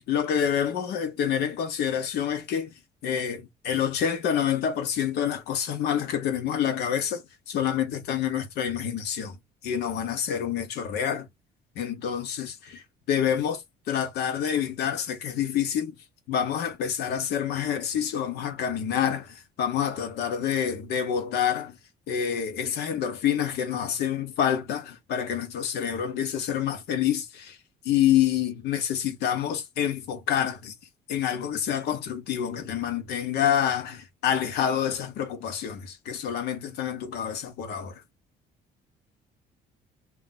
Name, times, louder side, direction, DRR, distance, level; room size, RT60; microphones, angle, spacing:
voice 1, 0.0-2.7 3.0-9.4 9.6-11.3 11.8-12.8 13.1-13.6 13.9-15.9 16.3-21.8 22.1-27.6 27.8-30.7 31.1-38.0, left 9 dB, 75° left, 0.8 m, -27 dB
2.3 x 2.0 x 3.9 m
cardioid pair, 110°, 17 cm